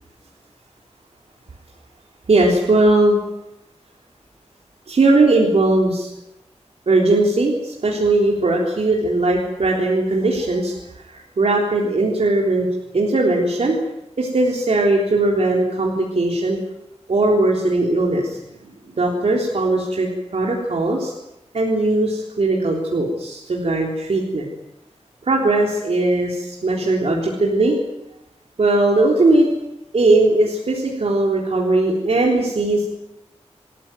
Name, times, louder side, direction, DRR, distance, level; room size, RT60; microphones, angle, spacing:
voice 1, 2.3-3.2 4.9-6.1 6.9-12.7 12.9-13.8 14.2-16.6 17.1-18.4 19.0-21.1 21.5-24.5 25.2-27.8 28.6-29.5 29.9-32.9, right 2 dB, 65° right, -2 dB, 3.7 m, -19 dB
27.0 x 14.0 x 9.2 m, 0.91 s
wide cardioid pair, 90°, 12 cm